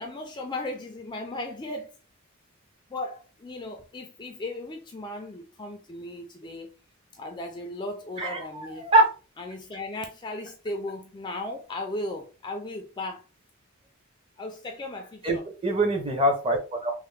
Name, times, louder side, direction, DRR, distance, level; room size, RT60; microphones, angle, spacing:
voice 1, 0.0-1.9 2.9-6.7 7.1-8.9 9.4-13.2 14.4-15.4, left 2 dB, 20° left, 0.3 m, -36 dB
voice 2, 8.2-9.1 15.2-16.9, right 1 dB, 25° right, 0.7 m, -24 dB
3.2 x 2.0 x 3.3 m
head